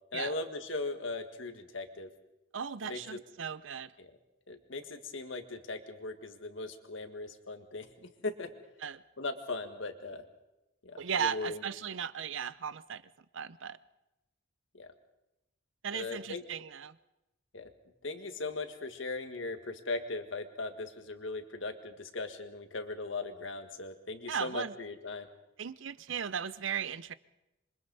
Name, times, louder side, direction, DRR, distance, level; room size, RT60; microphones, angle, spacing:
voice 1, 0.1-2.1 2.8-3.2 4.0-4.1 4.5-8.5 9.2-10.2 10.8-11.6 14.7-14.9 15.9-16.4 17.5-17.7 18.0-25.3, left 3 dB, 75° left, 7 dB, 1.8 m, -39 dB
voice 2, 2.5-3.9 8.8-9.0 10.9-13.0 13.3-13.8 15.8-17.0 24.3-24.7 25.6-27.1, right 7 dB, 75° right, 16 dB, 0.7 m, -36 dB
26.5 x 24.0 x 4.1 m, 0.94 s
head